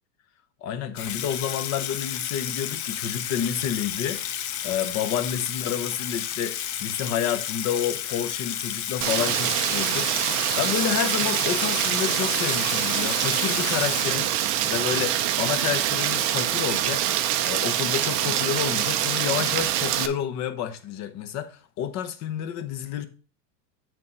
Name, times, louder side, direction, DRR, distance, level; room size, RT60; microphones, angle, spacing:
voice 1, 0.6-14.3 14.6-17.0 17.5-23.1, left 9 dB, 35° left, 0.8 m, -29 dB
Water tap faucet / Sink (filling or washing), 1.0-14.7, left 10 dB, 65° left, 1.1 m, -32 dB
Rain, 9.0-20.1, right 11 dB, 30° right, 0.4 m, -25 dB
8.5 x 3.6 x 5.3 m
supercardioid pair, 135°, 49 cm